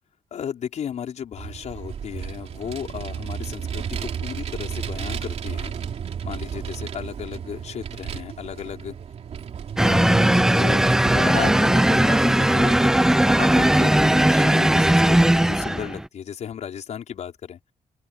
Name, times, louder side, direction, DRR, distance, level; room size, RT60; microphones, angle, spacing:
voice 1, 0.3-5.7 6.2-8.9 9.8-12.9 13.3-15.2 15.5-17.6, left 8 dB, 65° left, 4.9 m, -34 dB
Vehicle, 1.4-12.3, right 7 dB, 60° right, 3.1 m, -33 dB
sound 1, 9.8-16.1, right 1 dB, 5° right, 0.3 m, -18 dB
open air
wide cardioid pair, 170°, 13 cm